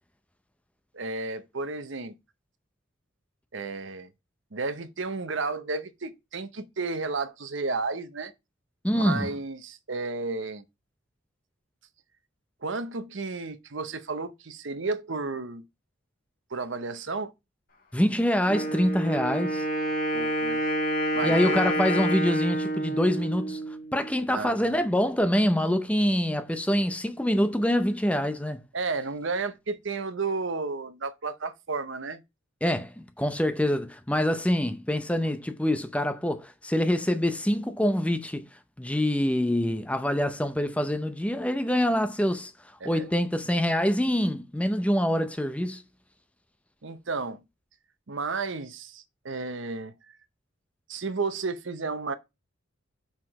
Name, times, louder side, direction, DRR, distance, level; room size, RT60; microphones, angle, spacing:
voice 1, 0.9-2.1 3.5-4.1 4.5-8.3 8.9-10.6 12.6-15.6 16.5-17.3 20.1-20.7 21.1-21.6 24.3-24.8 28.7-32.2 42.8-43.0 46.8-47.4 48.1-50.2 50.9-52.1, right 3 dB, 65° right, 0.8 m, -32 dB
voice 2, 8.8-9.3 17.9-19.6 21.2-23.6 23.9-28.6 32.6-38.5 38.8-45.8, equal, 5° left, 0.6 m, -25 dB
Wind instrument woodwind instrument, 18.5-24.2, equal, 45° left, 2.1 m, -28 dB
5.8 x 4.9 x 4.8 m
head